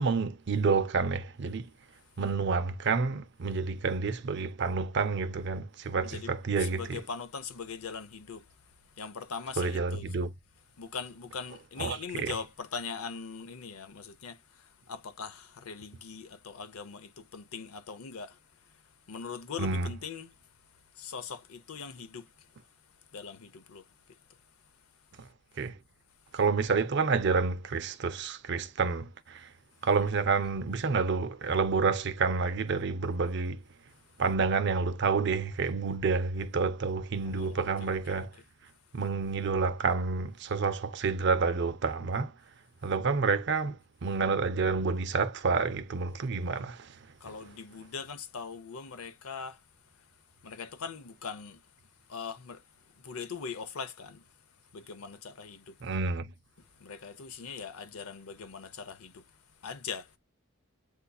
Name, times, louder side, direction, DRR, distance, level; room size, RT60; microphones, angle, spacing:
voice 1, 0.0-1.7 2.2-7.0 9.6-10.3 11.8-12.4 19.6-19.9 25.2-25.3 25.6-25.8 26.3-29.5 29.8-33.6 34.2-38.4 38.9-42.3 42.8-47.1 55.8-56.3, right 4 dB, 50° right, 0.5 m, -29 dB
voice 2, 6.6-8.4 9.0-10.1 10.8-14.4 14.9-18.4 19.1-20.3 21.0-22.3 23.1-23.8 37.2-38.3 47.2-49.6 50.4-51.6 52.1-52.6 53.0-54.2 54.7-55.8 56.8-59.2 59.6-60.2, left 5 dB, 80° left, 0.6 m, -41 dB
8.0 x 2.7 x 2.3 m
head